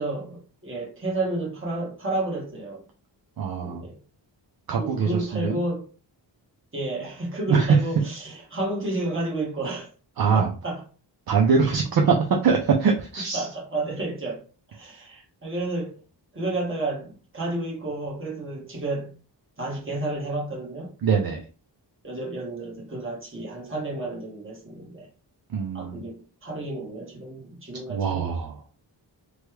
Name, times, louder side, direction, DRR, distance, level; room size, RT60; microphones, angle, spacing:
voice 1, 0.0-2.8 3.6-4.0 4.7-5.9 6.7-9.9 10.3-10.8 13.3-14.4 14.7-16.0 16.3-19.2 19.6-20.9 22.0-25.1 25.7-28.3, right 2 dB, 25° right, 1.2 m, -31 dB
voice 2, 3.4-3.9 4.7-5.6 7.5-7.8 10.2-10.5 11.3-13.5 21.0-21.5 25.5-26.0 27.9-28.6, right 5 dB, 55° right, 0.5 m, -23 dB
3.1 x 2.2 x 3.1 m
wide cardioid pair, 155°, 44 cm